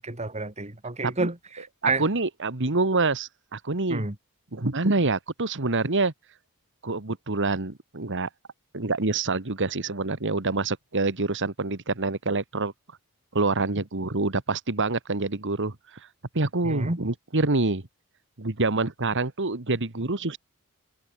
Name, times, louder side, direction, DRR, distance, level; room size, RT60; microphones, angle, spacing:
voice 1, 0.0-2.0 3.9-4.2 16.6-17.0, right 3 dB, 30° right, 2.8 m, -30 dB
voice 2, 1.8-4.0 4.5-6.1 6.8-8.3 8.7-12.7 13.3-15.7 16.3-17.8 18.4-20.4, right 3 dB, 60° right, 1.9 m, -26 dB
head